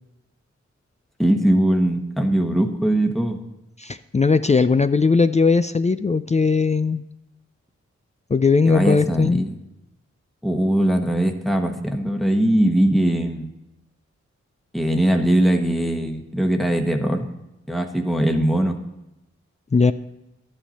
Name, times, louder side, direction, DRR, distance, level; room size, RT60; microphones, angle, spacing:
voice 1, 1.2-3.4 8.7-9.5 10.4-13.5 14.7-17.3 17.7-18.8, right 1 dB, ahead, 4 dB, 1.2 m, -20 dB
voice 2, 3.8-7.0 8.3-9.4 19.7-19.9, left 4 dB, 25° left, 12 dB, 0.4 m, -18 dB
11.5 x 8.9 x 4.2 m, 0.92 s
cardioid pair, 40°, 29 cm